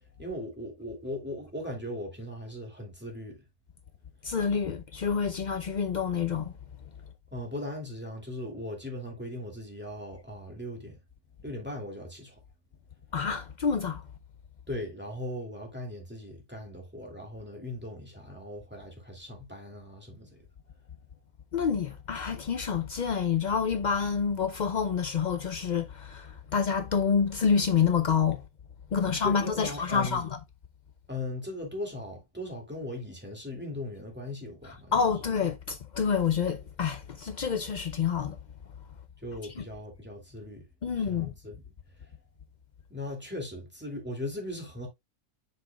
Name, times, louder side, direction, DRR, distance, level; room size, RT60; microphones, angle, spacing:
voice 1, 0.2-3.4 7.3-11.0 11.4-12.4 14.7-20.4 29.0-30.2 31.1-34.9 39.2-41.6 42.9-44.9, left 1 dB, 5° right, 2.3 m, -38 dB
voice 2, 4.2-6.5 13.1-14.1 21.5-28.4 28.9-30.4 34.6-38.4 39.6-39.7 40.8-41.3, left 6 dB, 75° left, 0.4 m, -28 dB
7.6 x 6.1 x 2.2 m
omnidirectional pair, 1.5 m